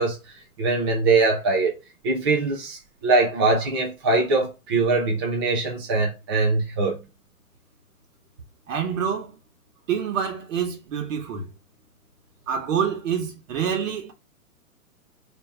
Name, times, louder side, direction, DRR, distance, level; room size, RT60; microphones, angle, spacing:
voice 1, 0.0-1.7 2.0-7.0, right 3 dB, 20° right, 0.4 m, -22 dB
voice 2, 8.7-9.3 9.9-11.5 12.5-14.1, right 7 dB, 55° right, 1.5 m, -26 dB
4.4 x 2.8 x 3.4 m
hypercardioid pair, 140°, 45 cm